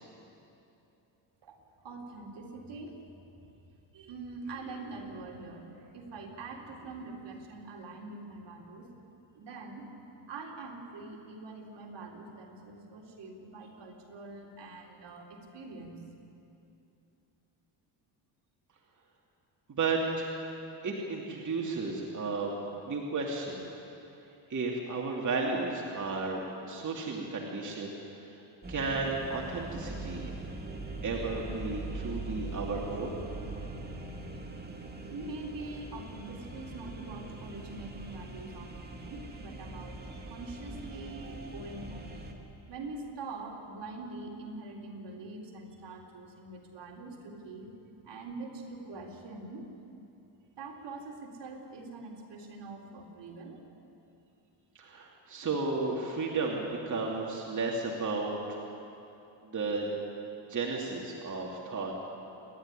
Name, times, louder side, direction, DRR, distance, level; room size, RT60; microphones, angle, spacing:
voice 1, 1.8-3.3 3.9-8.9 9.3-9.9 10.2-16.0 35.1-42.1 42.7-47.7 48.0-49.7 50.6-53.6, right 3 dB, 60° right, 0 dB, 3.8 m, -44 dB
voice 2, 19.7-20.3 20.8-22.6 22.9-23.6 24.5-28.4 28.7-30.3 31.0-33.2 54.7-58.6 59.4-59.9 60.5-61.9, right 3 dB, 35° right, -1 dB, 2.7 m, -33 dB
sound 1, 28.6-42.3, right 2 dB, 20° right, 2.5 m, -42 dB
28.0 x 11.0 x 10.0 m, 2.8 s
cardioid pair, 90°, 48 cm